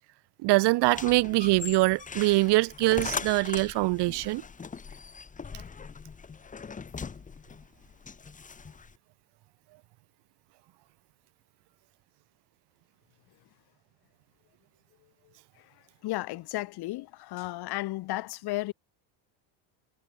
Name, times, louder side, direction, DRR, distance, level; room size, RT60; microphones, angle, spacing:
voice 1, 0.4-4.4, right 21 dB, 60° right, 2.6 m, -23 dB
sound 1, 0.8-9.0, left 5 dB, 15° left, 2.7 m, -40 dB
voice 2, 16.0-18.7, left 18 dB, 55° left, 6.7 m, -33 dB
cardioid pair, 170°, 45 cm